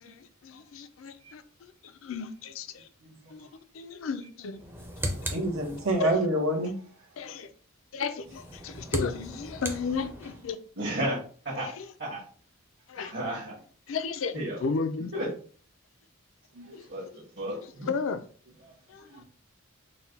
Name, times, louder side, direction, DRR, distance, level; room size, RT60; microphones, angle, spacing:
voice 1, 0.0-2.9 3.3-3.5 3.7-4.6 6.0-6.2 7.2-7.5 7.9-10.6 11.6-11.9 12.9-13.1 13.9-15.1 16.7-16.9 17.9-18.2 18.9-19.2, left 5 dB, 70° left, 0.4 m, -34 dB
voice 2, 3.0-3.3 5.3-6.8 16.5-16.7 19.0-19.2, right 1 dB, 90° right, 0.9 m, -28 dB
sound 1, 4.6-6.2 8.2-10.5, right 1 dB, 10° right, 0.5 m, -37 dB
voice 3, 10.8-11.2 11.4-11.7 12.0-12.2 13.0-13.6 14.3-14.7 15.1-15.3 16.9-17.9, right 1 dB, 55° right, 1.3 m, -33 dB
4.0 x 2.2 x 4.0 m
head